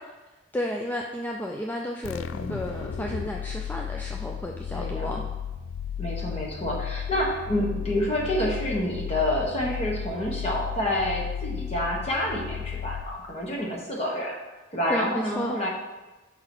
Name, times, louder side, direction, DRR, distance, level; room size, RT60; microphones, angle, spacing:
voice 1, 0.5-5.2 14.9-15.6, left 1 dB, 10° left, 0 dB, 0.4 m, -32 dB
sound 1, 2.0-13.5, left 8 dB, 80° left, 0.3 m, -34 dB
voice 2, 2.3-2.8 4.7-5.2 6.0-14.4 14.7-15.7, equal, 35° left, -3 dB, 1.4 m, -28 dB
5.6 x 3.9 x 6.1 m, 1.2 s
head